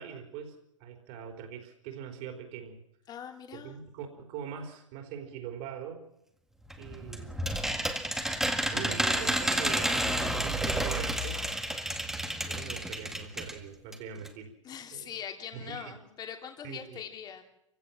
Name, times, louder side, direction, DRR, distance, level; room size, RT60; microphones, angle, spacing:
voice 1, 0.0-2.8 3.5-6.0 6.8-7.3 8.7-11.4 12.4-14.5 14.9-15.2 15.5-16.0 16.6-17.0, right 7 dB, 40° right, 4 dB, 4.4 m, -42 dB
voice 2, 3.1-3.8 14.6-17.4, left 8 dB, 25° left, 4 dB, 3.0 m, -42 dB
sound 1, 6.7-13.6 13.9-14.0 14.2-14.3, right 1 dB, ahead, 1.9 m, -30 dB
28.0 x 16.0 x 7.4 m, 0.82 s
figure-of-eight pair, 105°, 16 cm